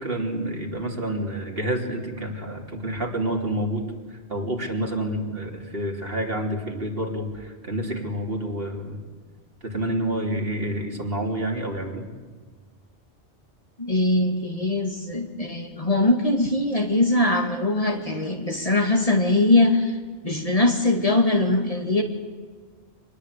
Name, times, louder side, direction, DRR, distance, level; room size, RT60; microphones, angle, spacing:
voice 1, 0.0-9.0 9.6-12.1, right 1 dB, 55° right, 2 dB, 3.4 m, -28 dB
voice 2, 13.8-20.0 20.2-22.0, left 2 dB, 30° left, 4 dB, 2.3 m, -21 dB
25.5 x 20.0 x 8.4 m, 1.5 s
omnidirectional pair, 1.1 m